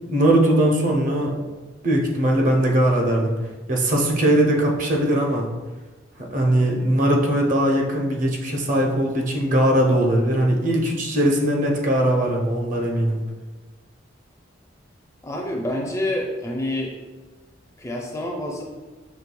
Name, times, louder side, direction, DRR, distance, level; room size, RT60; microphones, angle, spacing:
voice 1, 0.1-1.4 1.8-3.3 3.7-5.4 6.2-13.2, right 1 dB, 40° right, 0 dB, 0.7 m, -20 dB
voice 2, 15.2-16.9 17.8-18.6, left 1 dB, 15° left, 0 dB, 0.4 m, -27 dB
5.9 x 3.1 x 2.2 m, 1.3 s
head